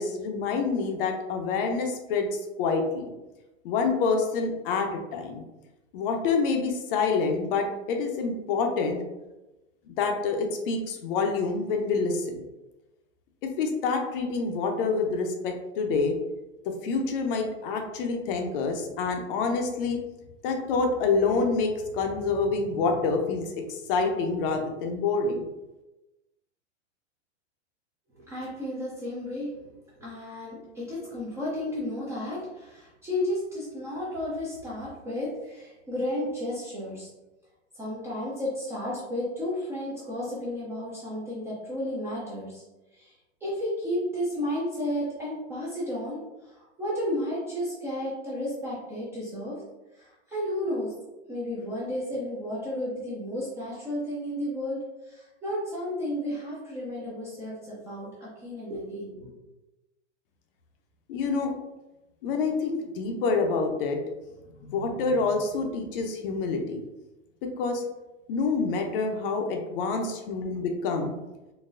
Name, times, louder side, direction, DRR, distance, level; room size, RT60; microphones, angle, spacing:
voice 1, 0.0-2.3 2.6-3.1 3.6-5.4 5.9-9.0 9.9-12.3 13.4-16.2 16.7-20.0 20.4-25.5 61.1-61.5 62.2-64.0 64.6-66.8 67.6-67.8 68.3-71.1, left 4 dB, 50° left, 4 dB, 0.6 m, -27 dB
voice 2, 28.1-29.5 30.0-37.1 37.7-42.6 42.9-43.1 43.4-49.6 49.9-50.9 51.3-59.3, left 1 dB, 10° right, -8 dB, 0.3 m, -33 dB
3.8 x 2.1 x 2.5 m, 1.0 s
hypercardioid pair, 135°, 37 cm